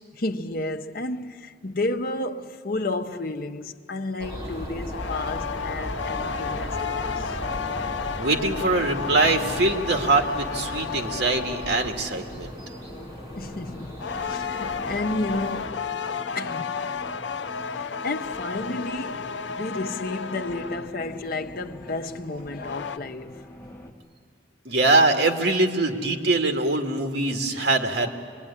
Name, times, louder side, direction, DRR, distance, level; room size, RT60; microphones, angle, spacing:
voice 1, 0.1-7.4 13.4-16.0 16.3-16.9 17.6-23.5, left 2 dB, 55° left, 1.0 m, -32 dB
sound 1, 4.2-15.7, equal, 20° right, 4.7 m, -37 dB
sound 2, 4.9-12.1 14.0-21.1 22.4-23.0, left 6 dB, 85° left, 0.6 m, -32 dB
voice 2, 8.2-12.5 24.6-28.2, right 2 dB, 70° right, 2.2 m, -23 dB
sound 3, 9.0-23.9, left 1 dB, 10° left, 2.7 m, -44 dB
25.5 x 21.5 x 10.0 m
head